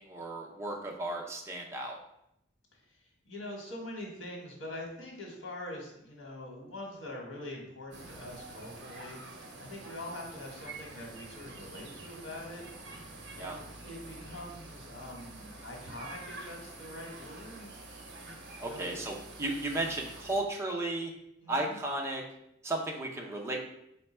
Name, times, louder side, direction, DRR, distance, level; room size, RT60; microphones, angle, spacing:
voice 1, 0.0-2.0 13.4-13.6 18.3-21.1 21.5-22.2 22.6-23.6, right 2 dB, 15° right, 0 dB, 0.5 m, -34 dB
voice 2, 3.2-13.0 13.4-17.7 18.6-19.0 21.4-21.8, left 1 dB, 85° left, 0 dB, 1.2 m, -44 dB
sound 1, 7.9-20.4, right 2 dB, 60° right, 0.7 m, -47 dB
4.4 x 2.2 x 4.2 m, 0.78 s
head